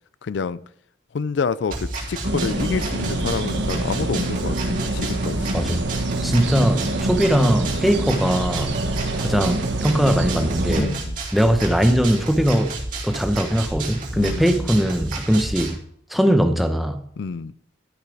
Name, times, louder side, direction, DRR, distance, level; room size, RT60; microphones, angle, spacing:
voice 1, 0.2-0.6 1.1-5.5 10.8-11.2 14.2-14.7 17.2-17.5, left 5 dB, 65° left, 17 dB, 0.4 m, -28 dB
sound 1, 1.7-15.7, right 2 dB, 45° right, 3.1 m, -31 dB
sound 2, 2.2-10.8, right 2 dB, 65° right, 1.4 m, -26 dB
voice 2, 5.5-5.8 6.2-8.8 9.2-11.0 11.3-12.7 13.0-15.8 16.1-17.0, equal, ahead, 7 dB, 0.8 m, -20 dB
12.5 x 5.6 x 4.8 m, 0.67 s
head